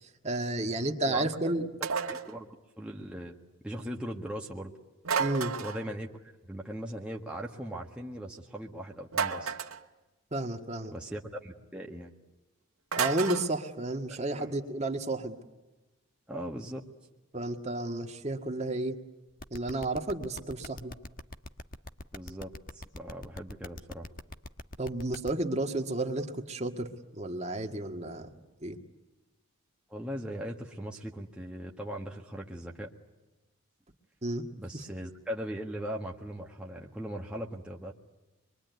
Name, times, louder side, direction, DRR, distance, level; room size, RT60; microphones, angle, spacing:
voice 1, 0.0-1.7 5.2-5.5 10.3-10.9 13.0-15.4 17.3-19.0 19.5-20.9 24.8-28.3 28.6-28.8 34.2-34.4, right 2 dB, 30° right, 4 dB, 1.8 m, -32 dB
voice 2, 1.1-1.5 1.8-3.3 3.6-4.7 5.6-6.1 6.4-9.5 10.9-12.1 14.1-14.6 16.3-16.8 22.1-24.1 29.9-32.9 34.6-37.9, equal, 5° right, -2 dB, 1.6 m, -39 dB
sound 1, 1.8-2.3 5.0-5.9 9.1-9.8 12.9-13.5, right 6 dB, 85° right, 1.7 m, -31 dB
sound 2, 19.4-25.3, left 2 dB, 40° left, 1.3 m, -42 dB
26.0 x 23.0 x 9.4 m, 1.1 s
head